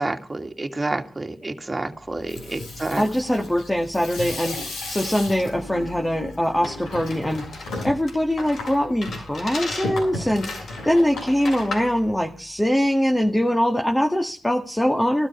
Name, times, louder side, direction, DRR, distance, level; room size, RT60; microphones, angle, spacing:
voice 1, 0.0-3.0, right 2 dB, 25° right, 4 dB, 2.4 m, -29 dB
Water tap faucet / Sink (filling or washing), 2.1-12.3, left 2 dB, 90° left, 7.8 m, -35 dB
voice 2, 3.0-7.5 7.8-15.3, equal, 10° left, 3 dB, 1.9 m, -22 dB
sound 1, 6.6-12.0, left 2 dB, 70° left, 7.3 m, -36 dB
16.5 x 12.5 x 4.9 m, 0.36 s
supercardioid pair, 45°, 0 cm